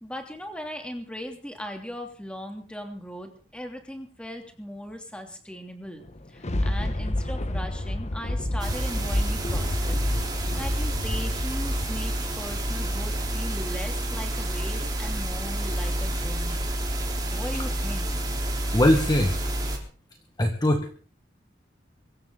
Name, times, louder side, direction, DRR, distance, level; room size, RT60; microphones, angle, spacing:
voice 1, 0.0-16.7 17.3-18.2, equal, 5° left, 4 dB, 3.0 m, -38 dB
Thunder, 6.0-13.6 14.1-14.2, left 1 dB, 35° left, 1.2 m, -30 dB
sound 1, 8.6-19.8, right 1 dB, 20° right, 4.0 m, -29 dB
voice 2, 18.7-19.4 20.4-20.9, left 1 dB, 20° left, 4 dB, 1.6 m, -21 dB
23.5 x 14.0 x 4.0 m, 0.40 s
head